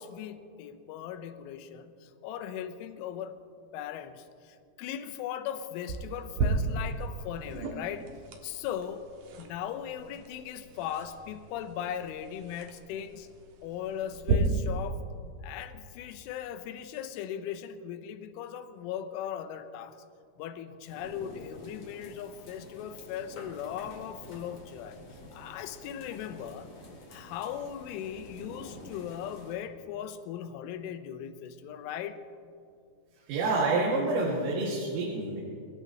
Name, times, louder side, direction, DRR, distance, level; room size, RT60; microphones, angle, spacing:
voice 1, 0.0-3.4 3.7-8.1 8.4-9.1 9.4-13.3 13.6-15.0 15.4-20.0 20.4-26.7 27.1-32.2, left 9 dB, 80° left, 9 dB, 3.3 m, -38 dB
sound 1, 5.9-14.3, right 5 dB, 65° right, 2.3 m, -36 dB
sound 2, 20.9-29.5, left 1 dB, 40° left, 3.1 m, -49 dB
voice 2, 33.3-35.4, right 3 dB, 80° right, -4 dB, 4.8 m, -28 dB
26.0 x 18.0 x 3.0 m, 2.4 s
omnidirectional pair, 5.8 m